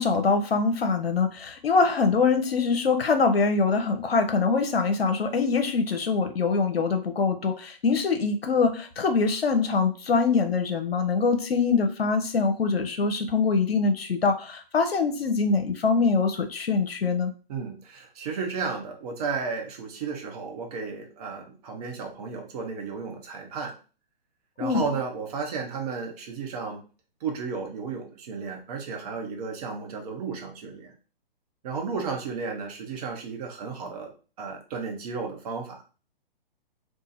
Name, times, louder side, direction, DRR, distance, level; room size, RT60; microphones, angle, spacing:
voice 1, 0.0-17.3 24.6-24.8, left 4 dB, 90° left, 6 dB, 0.6 m, -24 dB
voice 2, 17.5-23.8 24.6-26.8 27.2-30.9 31.6-34.1 34.4-35.8, right 5 dB, 40° right, 2 dB, 1.0 m, -33 dB
2.8 x 2.3 x 4.0 m, 0.36 s
figure-of-eight pair, 130°, 29 cm